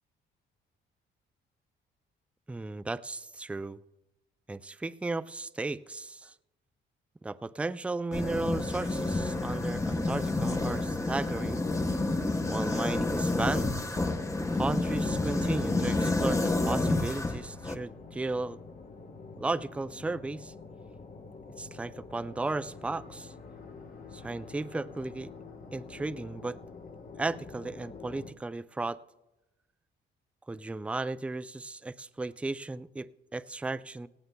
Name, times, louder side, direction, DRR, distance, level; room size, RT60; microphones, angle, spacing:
voice 1, 2.5-3.8 4.5-6.3 7.2-11.6 12.4-13.7 14.6-18.6 19.4-20.5 21.6-23.3 24.1-25.3 25.7-26.6 27.2-29.0 30.5-34.1, right 3 dB, 5° right, 14 dB, 0.3 m, -35 dB
sound 1, 8.1-17.8, left 2 dB, 15° left, 0.8 m, -29 dB
sound 2, 16.3-28.3, left 4 dB, 45° left, 1.3 m, -47 dB
18.5 x 16.0 x 2.2 m, 1.0 s
cardioid pair, 90°, 20 cm